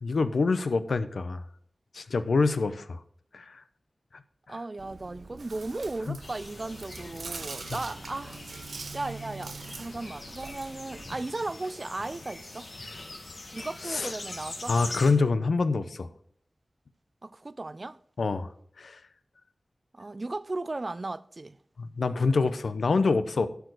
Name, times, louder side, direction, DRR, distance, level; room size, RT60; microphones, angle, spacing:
voice 1, 0.0-1.4 1.9-3.0 3.3-3.6 6.1-6.2 7.3-7.4 13.9-14.1 14.7-16.1 18.2-18.5 18.8-19.0 21.8-23.5, left 4 dB, 85° left, 0.7 m, -26 dB
voice 2, 4.5-8.4 8.9-12.7 13.5-14.7 17.2-18.0 19.9-21.6, right 2 dB, 40° right, 0.4 m, -36 dB
Chewing mastication, 4.8-11.1, right 4 dB, 85° right, 0.9 m, -43 dB
sound 1, 6.2-15.1, left 2 dB, 60° left, 1.9 m, -43 dB
12.0 x 4.8 x 6.3 m
wide cardioid pair, 80°, 0 cm